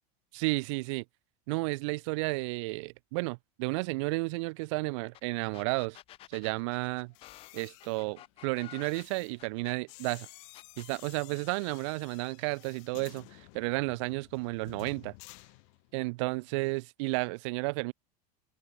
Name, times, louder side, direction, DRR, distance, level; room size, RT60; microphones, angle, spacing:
voice 1, 0.3-1.0 1.5-6.0 6.3-7.1 7.5-10.3 10.8-15.1 15.9-17.9, right 27 dB, 50° right, 0.4 m, -32 dB
sound 1, 5.1-5.2 5.5-10.1 10.5-11.0, left 14 dB, 25° left, 1.5 m, -51 dB
sound 2, 7.0-16.1 16.4-16.7, left 35 dB, 50° left, 7.9 m, -53 dB
supercardioid pair, 170°, 21 cm